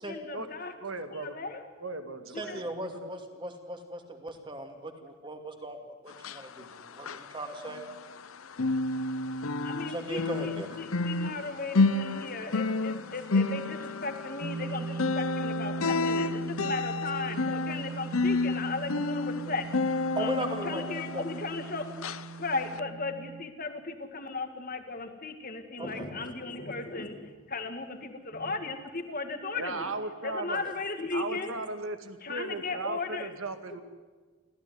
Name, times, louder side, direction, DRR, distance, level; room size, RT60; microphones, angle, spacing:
voice 1, 0.1-0.7 1.2-1.6 2.3-2.7 9.6-22.0 22.4-29.9 30.2-31.5 32.2-33.3, left 3 dB, 40° left, 7 dB, 2.1 m, -36 dB
voice 2, 0.8-1.4 1.8-3.3 29.6-30.6 31.1-33.8, right 3 dB, 70° right, 7 dB, 2.1 m, -37 dB
voice 3, 2.4-7.8 9.9-10.8 20.2-20.8 21.1-21.4 25.8-26.1 30.6-30.7, right 1 dB, 20° right, 5 dB, 2.5 m, -38 dB
sound 1, 6.1-8.3 8.5-21.7 22.0-22.2 22.7-22.8, left 3 dB, 75° left, 0.8 m, -30 dB
sound 2, 14.4-23.4, right 5 dB, 50° right, 1.5 m, -39 dB
26.0 x 16.0 x 9.7 m, 1.4 s
head